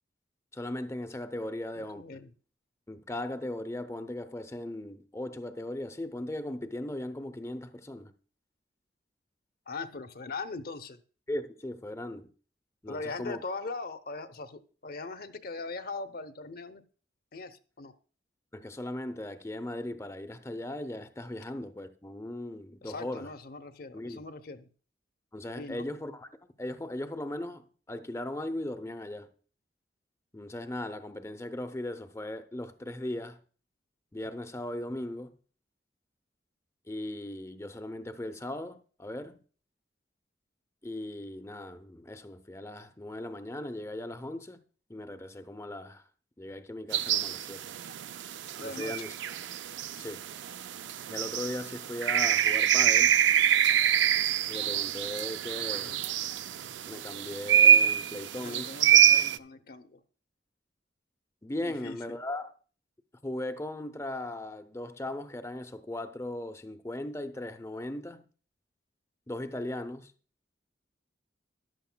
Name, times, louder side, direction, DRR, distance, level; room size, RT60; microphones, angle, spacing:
voice 1, 0.5-2.0 2.9-8.1 11.3-12.3 12.8-13.4 18.5-23.3 23.9-24.2 25.3-26.3 26.6-29.3 30.3-33.4 34.1-35.3 36.9-39.4 40.8-44.6 44.9-46.0 46.4-47.7 48.6-49.1 50.0-50.2 51.1-53.2 54.5-56.0 56.9-58.7 61.4-62.5 63.2-68.3 69.3-70.1, left 1 dB, 15° left, 0.6 m, -38 dB
voice 2, 1.8-2.3 9.7-11.0 12.9-16.8 17.3-17.9 22.8-24.7 25.6-25.9 48.6-49.0 55.7-56.0 58.3-60.0 61.6-62.2, left 3 dB, 55° left, 0.7 m, -40 dB
sound 1, 46.9-59.4, right 9 dB, 85° right, 0.4 m, -25 dB
14.0 x 11.0 x 2.2 m
head